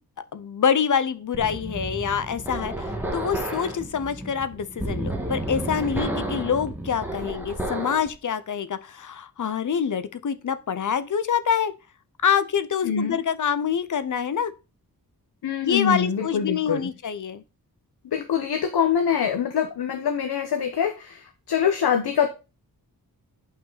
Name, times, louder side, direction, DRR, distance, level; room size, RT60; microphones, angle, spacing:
voice 1, 0.3-11.7 12.2-14.5 15.6-17.4, left 7 dB, 55° left, 0.7 m, -26 dB
sound 1, 1.3-8.1, right 1 dB, 5° right, 1.6 m, -31 dB
voice 2, 12.8-13.2 15.4-16.9 18.0-22.3, left 7 dB, 90° left, 1.0 m, -24 dB
8.8 x 5.7 x 4.0 m
wide cardioid pair, 170°, 37 cm